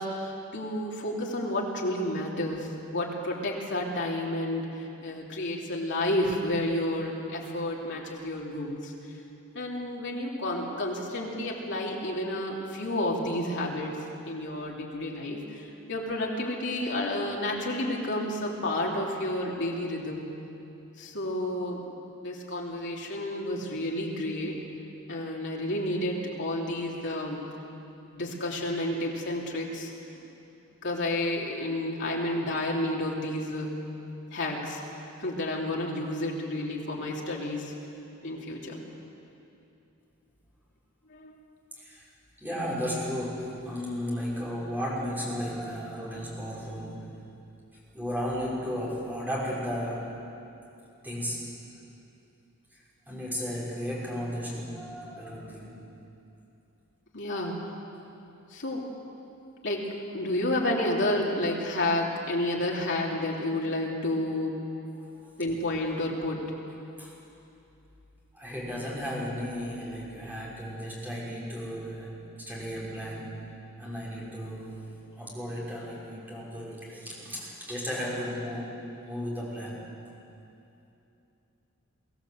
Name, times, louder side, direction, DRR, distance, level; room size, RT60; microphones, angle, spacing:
voice 1, 0.0-8.9 9.5-14.0 14.3-20.3 21.0-21.8 22.2-24.5 25.1-27.5 28.1-29.9 30.8-33.8 34.3-34.8 35.2-37.8 38.2-38.8 41.1-41.3 57.1-57.8 58.5-58.9 59.6-59.9 60.1-64.6 65.4-66.5, left 1 dB, 55° left, -2 dB, 3.0 m, -30 dB
voice 2, 41.8-42.1 42.4-47.1 47.9-50.2 51.0-51.5 52.7-55.8 65.1-65.3 67.0-67.2 68.3-73.5 73.8-74.9 75.2-79.8, equal, 10° right, -6 dB, 5.7 m, -34 dB
23.5 x 16.0 x 7.9 m, 2.8 s
head